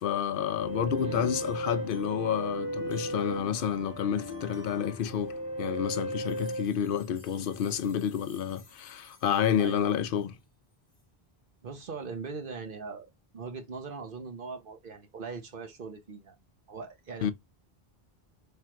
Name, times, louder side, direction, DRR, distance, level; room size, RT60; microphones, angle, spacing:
voice 1, 0.0-5.3 5.6-10.3 17.2-17.3, left 8 dB, 65° left, 0.7 m, -29 dB
sound 1, 0.6-9.5, equal, 35° left, 1.0 m, -37 dB
voice 2, 1.0-1.3 9.6-9.9 11.6-16.4 16.7-17.3, right 4 dB, 60° right, 1.1 m, -40 dB
3.3 x 2.4 x 4.4 m
omnidirectional pair, 1.0 m